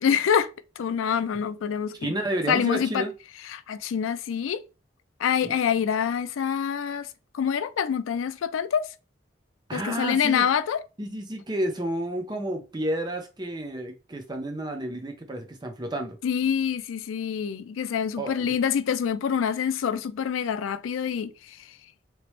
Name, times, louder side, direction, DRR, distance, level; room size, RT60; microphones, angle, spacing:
voice 1, 0.0-0.5 0.8-2.0 2.5-3.0 3.5-4.6 5.2-7.1 7.3-8.9 9.7-10.8 16.2-21.3, left 7 dB, 85° left, 0.4 m, -26 dB
voice 2, 2.0-3.1 5.4-5.6 9.7-10.4 11.0-16.2 18.2-18.6, right 1 dB, 20° right, 0.5 m, -31 dB
3.1 x 2.9 x 3.0 m
head